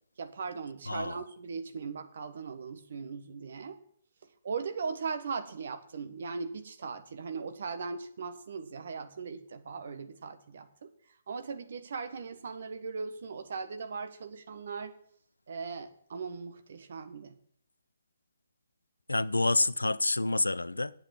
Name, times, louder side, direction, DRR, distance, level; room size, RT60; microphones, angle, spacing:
voice 1, 0.2-3.8 4.4-10.9 11.3-14.9 15.5-17.4, right 5 dB, 60° right, 1.4 m, -39 dB
voice 2, 0.9-1.2 19.1-20.9, left 2 dB, 85° left, 0.5 m, -28 dB
8.6 x 8.5 x 9.0 m
figure-of-eight pair, 130°, 0 cm